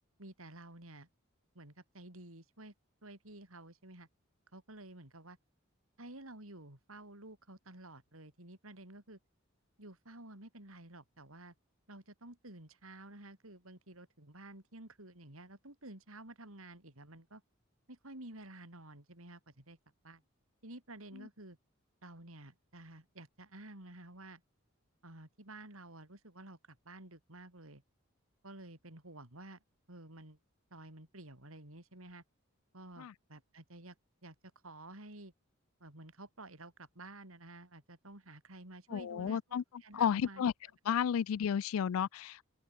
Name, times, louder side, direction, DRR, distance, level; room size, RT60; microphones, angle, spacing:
voice 1, 0.2-1.1 1.6-2.7 3.0-4.1 4.5-5.4 6.0-9.2 9.8-11.5 11.9-17.4 17.9-19.8 20.0-20.2 20.6-21.6 22.0-24.4 25.0-27.8 28.4-29.6 29.9-30.4 30.7-32.2 32.7-34.0 34.2-34.4 34.6-35.3 35.8-39.4 39.8-40.5, right 2 dB, 80° right, 5.3 m, -52 dB
voice 2, 38.9-39.6 39.9-40.5 40.9-42.4, left 8 dB, 85° left, 0.3 m, -32 dB
head